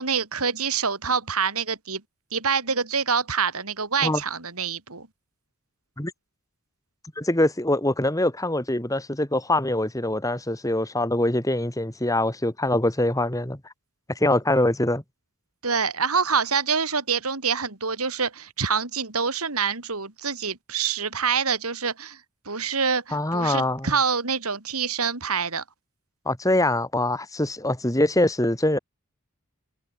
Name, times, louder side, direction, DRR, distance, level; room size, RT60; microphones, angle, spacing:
voice 1, 0.0-2.0 2.3-5.1 15.6-22.2 22.5-25.6, right 6 dB, 85° right, 3.7 m, -26 dB
voice 2, 7.2-13.6 14.1-15.0 23.1-23.9 26.3-28.8, left 1 dB, 15° left, 2.3 m, -23 dB
head